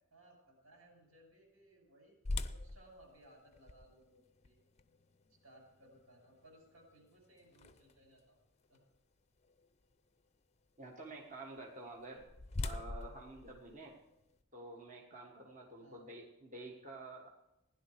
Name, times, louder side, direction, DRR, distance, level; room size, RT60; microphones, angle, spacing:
voice 1, 0.1-2.2 2.4-4.6 5.4-8.4 8.7-8.8 15.7-16.1, right 1 dB, 85° right, 1 dB, 6.3 m, -62 dB
sound 1, 2.2-8.2 8.7-8.8 9.4-9.7 11.7-14.4, left 2 dB, 30° left, 0.6 m, -44 dB
voice 2, 10.8-12.2 12.6-13.9 14.5-17.3, right 2 dB, 35° right, -1 dB, 1.5 m, -49 dB
16.5 x 10.5 x 4.8 m, 0.92 s
head